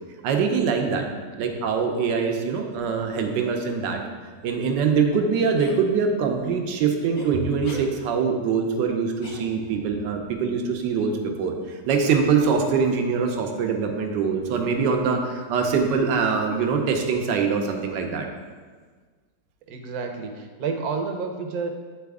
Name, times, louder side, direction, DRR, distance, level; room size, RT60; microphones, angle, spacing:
voice 1, 0.2-1.1 1.4-4.0 4.4-11.1 11.4-18.3, right 5 dB, 90° right, 3 dB, 1.4 m, -23 dB
sound 1, 5.6-5.8 7.2-7.3 7.6-7.9 9.2-9.9, left 2 dB, 60° left, 0.4 m, -39 dB
voice 2, 19.7-21.7, right 5 dB, 65° right, 4 dB, 1.1 m, -30 dB
9.5 x 4.1 x 3.5 m, 1.5 s
omnidirectional pair, 1.9 m